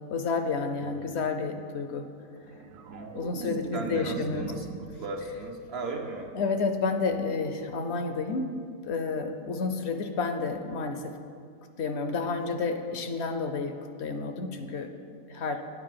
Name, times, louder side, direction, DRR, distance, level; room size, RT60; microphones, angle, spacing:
voice 1, 0.1-2.1 3.1-4.5 6.3-8.4 8.8-11.1 11.8-13.7 14.0-14.9 15.3-15.6, left 4 dB, 60° left, 7 dB, 0.8 m, -30 dB
sound 1, 2.4-5.6 5.9-6.3, right 5 dB, 80° right, 1.1 m, -39 dB
voice 2, 3.7-6.3, right 3 dB, 60° right, 3 dB, 0.8 m, -37 dB
9.8 x 4.7 x 7.5 m, 2.3 s
omnidirectional pair, 1.4 m